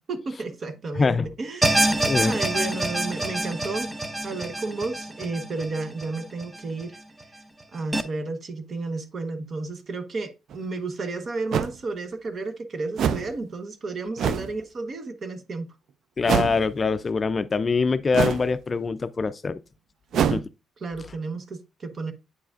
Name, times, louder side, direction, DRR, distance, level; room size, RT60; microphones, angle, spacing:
voice 1, 0.1-3.9 4.2-7.0 7.7-15.7 20.1-20.5 20.8-22.1, right 3 dB, 45° right, 0.9 m, -32 dB
voice 2, 1.0-1.3 2.0-2.3 14.2-14.3 16.2-19.6 20.3-20.4, left 4 dB, 35° left, 0.3 m, -24 dB
sound 1, 1.6-6.8 7.2-7.3 7.9-8.0, right 1 dB, 10° right, 0.6 m, -26 dB
sound 2, 10.5-10.6 11.5-11.7 13.0-13.3 14.2-14.5 16.2-16.6 18.1-18.5 20.1-20.4, right 8 dB, 70° right, 0.3 m, -24 dB
8.2 x 4.8 x 2.4 m
cardioid pair, 90°, 0 cm